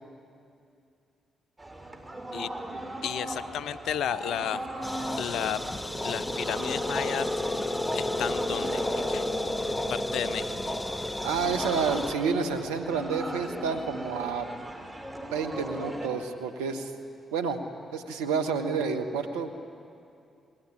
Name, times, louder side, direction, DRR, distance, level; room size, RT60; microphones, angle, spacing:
sound 1, 1.6-16.1, right 1 dB, 15° right, 5.0 m, -38 dB
voice 1, 3.0-4.7 5.2-5.6 6.0-7.3 7.9-9.2 9.9-10.6, left 10 dB, 70° left, 16 dB, 0.7 m, -33 dB
sound 2, 4.8-12.1, left 1 dB, 15° left, 1.6 m, -31 dB
voice 2, 11.2-14.5 15.3-16.9 17.3-17.6 17.9-19.5, right 5 dB, 85° right, 7 dB, 1.5 m, -29 dB
29.5 x 20.5 x 10.0 m, 2.5 s
hypercardioid pair, 40°, 0 cm